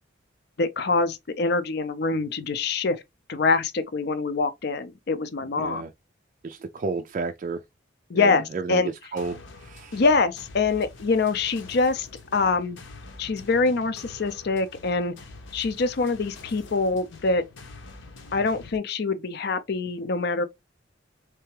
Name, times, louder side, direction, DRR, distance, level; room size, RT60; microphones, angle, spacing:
voice 1, 0.6-3.0 3.3-5.8 8.1-8.9 9.9-12.1 12.3-12.8 13.2-15.1 15.5-17.4 18.3-20.5, left 4 dB, 55° left, 0.5 m, -24 dB
voice 2, 5.6-5.9 6.4-7.6 8.1-10.0, right 4 dB, 40° right, 0.3 m, -32 dB
sound 1, 9.2-18.8, left 3 dB, 75° left, 0.9 m, -45 dB
3.4 x 3.3 x 3.2 m
head